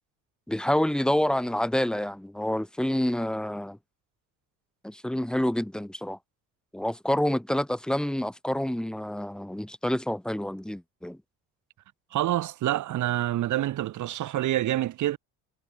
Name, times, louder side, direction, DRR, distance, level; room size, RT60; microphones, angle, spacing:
voice 1, 0.5-3.8 4.8-6.2 6.7-11.2, left 1 dB, ahead, 1.7 m, -28 dB
voice 2, 12.1-15.2, right 13 dB, 55° right, 2.2 m, -27 dB
cardioid pair, 115°, 35 cm